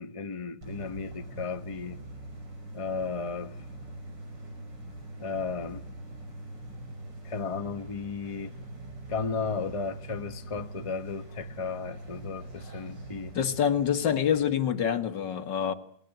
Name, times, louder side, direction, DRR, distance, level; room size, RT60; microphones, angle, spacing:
voice 1, 0.0-2.0 2.7-3.6 5.2-5.8 7.2-8.5 9.1-13.3, left 5 dB, 25° left, 0.9 m, -34 dB
sound 1, 0.6-14.4, right 2 dB, 85° right, 6.9 m, -43 dB
voice 2, 13.4-15.7, left 8 dB, 80° left, 2.2 m, -26 dB
28.0 x 18.5 x 9.2 m
omnidirectional pair, 1.9 m